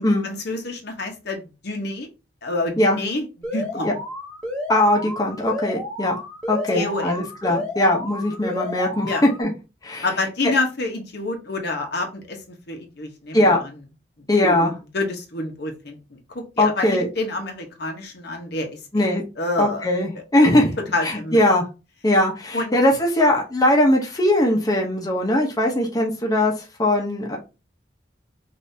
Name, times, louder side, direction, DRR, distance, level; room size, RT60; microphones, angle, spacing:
voice 1, 0.0-2.1 2.4-3.3 3.5-4.0 6.7-7.3 9.0-9.2 10.0-13.6 14.4-14.7 14.9-19.0 19.4-19.9 20.9-21.4 22.5-22.8, left 2 dB, 65° left, 1.0 m, -28 dB
Alarm, 3.4-9.4, left 1 dB, 5° left, 1.2 m, -32 dB
voice 2, 4.7-6.2 6.5-9.5 9.8-10.1 13.3-13.6 14.3-14.7 16.6-17.1 18.9-19.2 19.6-20.7 21.0-21.6 22.0-27.4, left 1 dB, 20° left, 0.8 m, -20 dB
5.3 x 2.7 x 2.7 m
head